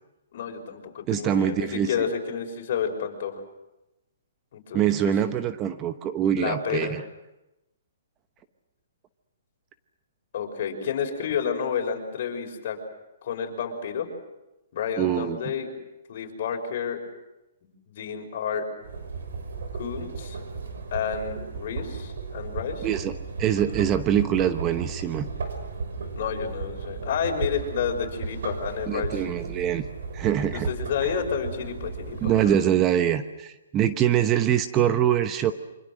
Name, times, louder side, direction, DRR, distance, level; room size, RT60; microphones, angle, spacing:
voice 1, 0.3-3.4 4.5-5.1 6.3-6.9 10.3-12.8 13.2-14.1 14.7-15.7 16.1-17.0 17.6-18.7 19.7-20.4 20.9-22.9 26.1-29.2 30.5-32.5, left 7 dB, 50° left, 2 dB, 6.0 m, -30 dB
voice 2, 1.1-1.9 4.7-7.0 15.0-15.4 22.8-23.1 23.4-25.2 28.9-29.8 30.1-30.7 32.2-35.5, right 10 dB, 20° right, 10 dB, 0.9 m, -24 dB
sound 1, 18.8-32.5, right 4 dB, 70° right, 6.1 m, -35 dB
27.5 x 25.5 x 6.4 m, 0.96 s
hypercardioid pair, 155°, 0 cm